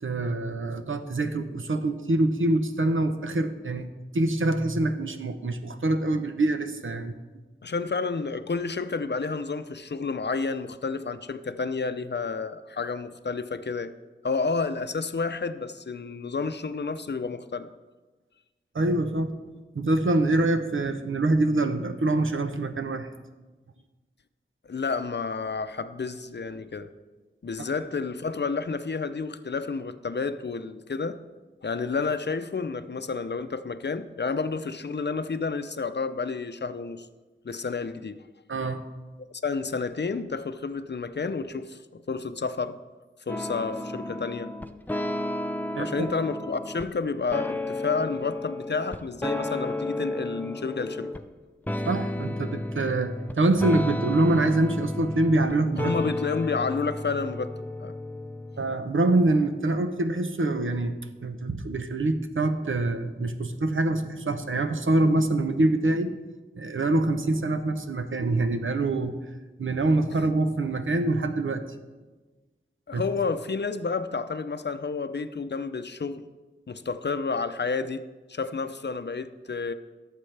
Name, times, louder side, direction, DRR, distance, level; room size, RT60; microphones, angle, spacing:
voice 1, 0.0-3.8 4.1-7.1 18.7-19.3 19.7-23.1 27.6-27.7 38.5-38.8 45.7-46.1 51.8-55.9 58.6-60.9 61.2-66.1 66.5-69.1 69.6-71.6 72.9-73.0, right 2 dB, 80° right, 0.8 m, -25 dB
voice 2, 7.6-13.9 14.2-17.7 24.7-26.9 27.4-31.2 31.6-37.1 37.4-38.2 39.4-42.8 43.3-44.5 45.8-51.1 55.8-57.5 57.8-57.9 72.9-76.2 76.7-79.7, left 4 dB, 60° left, 0.6 m, -30 dB
sound 1, 43.3-46.8 47.3-51.3 51.7-58.8, left 1 dB, 10° left, 0.5 m, -32 dB
17.5 x 7.5 x 3.4 m
wide cardioid pair, 60°, 20 cm